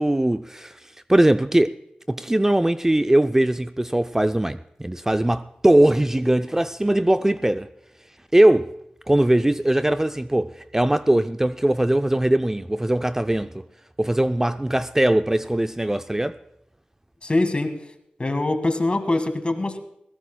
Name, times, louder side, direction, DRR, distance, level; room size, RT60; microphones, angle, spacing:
voice 1, 0.0-1.7 2.1-7.7 8.3-8.7 9.1-13.6 14.0-16.4, right 1 dB, 15° right, 0.4 m, -20 dB
voice 2, 17.2-17.9 18.2-19.8, left 2 dB, 40° left, 1.8 m, -23 dB
24.0 x 16.0 x 2.2 m
cardioid pair, 45°, 3 cm